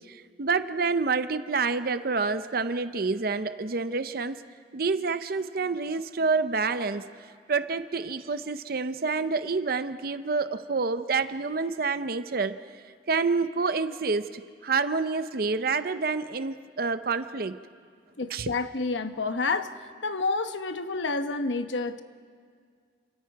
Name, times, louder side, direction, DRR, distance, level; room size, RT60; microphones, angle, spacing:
voice 1, 0.1-4.4 4.7-17.6 18.3-18.5, right 4 dB, 55° right, 11 dB, 0.7 m, -28 dB
voice 2, 18.2-19.7 20.0-22.0, left 3 dB, 90° left, 9 dB, 1.0 m, -29 dB
29.5 x 27.0 x 4.7 m, 2.1 s
head